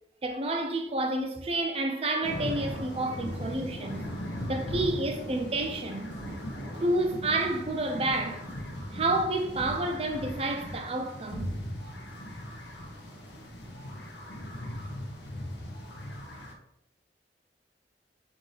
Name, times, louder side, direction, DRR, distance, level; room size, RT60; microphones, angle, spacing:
voice 1, 0.2-4.1 4.5-6.1 6.7-8.4 8.9-11.5, right 2 dB, 35° right, 0.5 m, -29 dB
sound 1, 2.2-16.5, equal, 75° left, 0.9 m, -38 dB
4.6 x 2.5 x 4.0 m
head